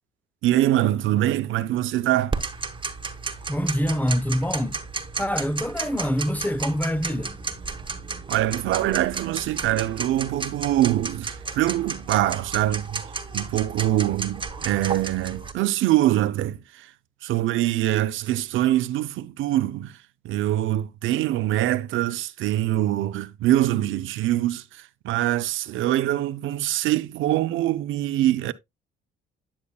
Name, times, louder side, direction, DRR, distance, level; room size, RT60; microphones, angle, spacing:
voice 1, 0.4-2.4 8.3-13.0 13.3-16.9 17.2-20.0 20.2-28.5, right 14 dB, 80° right, 0.5 m, -24 dB
Tick-tock, 2.3-15.5, right 4 dB, 25° right, 1.2 m, -33 dB
voice 2, 3.5-4.8 5.2-7.4, equal, 10° left, 0.6 m, -25 dB
9.6 x 6.9 x 2.3 m
cardioid pair, 90°, 20 cm